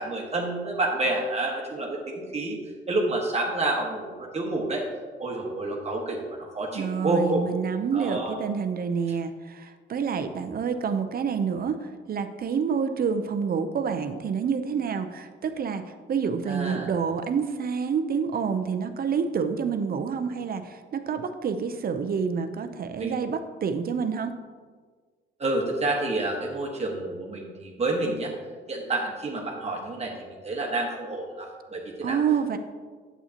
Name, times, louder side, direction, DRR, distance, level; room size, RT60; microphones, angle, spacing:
voice 1, 0.0-2.6 2.9-4.8 5.2-7.4 7.9-8.4 16.5-16.9 23.0-23.1 25.4-28.3 28.7-32.2, right 2 dB, 30° right, -1 dB, 1.4 m, -29 dB
voice 2, 6.7-24.3 32.0-32.6, right 6 dB, 50° right, 8 dB, 0.7 m, -28 dB
8.5 x 8.2 x 2.9 m, 1.5 s
cardioid pair, 90°, 20 cm